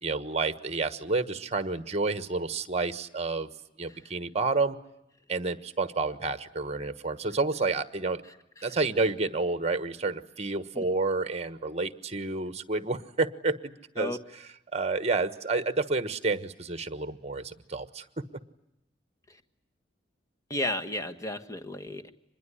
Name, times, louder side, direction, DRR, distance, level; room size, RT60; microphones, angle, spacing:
voice 1, 0.0-3.5 3.8-4.8 5.3-8.2 8.6-14.2 14.7-18.2, right 3 dB, 35° right, 12 dB, 1.3 m, -29 dB
voice 2, 20.5-22.1, left 1 dB, 20° left, 7 dB, 1.4 m, -34 dB
25.5 x 21.5 x 10.0 m, 0.84 s
head